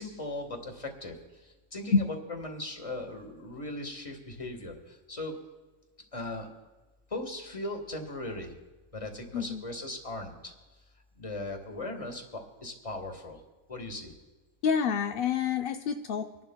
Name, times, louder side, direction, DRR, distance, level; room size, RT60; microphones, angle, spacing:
voice 1, 0.0-5.3 6.1-6.5 7.1-8.5 8.9-10.5 11.1-13.4 13.7-14.1, left 2 dB, 25° left, 4 dB, 1.3 m, -38 dB
voice 2, 14.6-16.4, left 6 dB, 70° left, 6 dB, 0.5 m, -28 dB
25.5 x 11.0 x 2.2 m, 1.2 s
omnidirectional pair, 1.4 m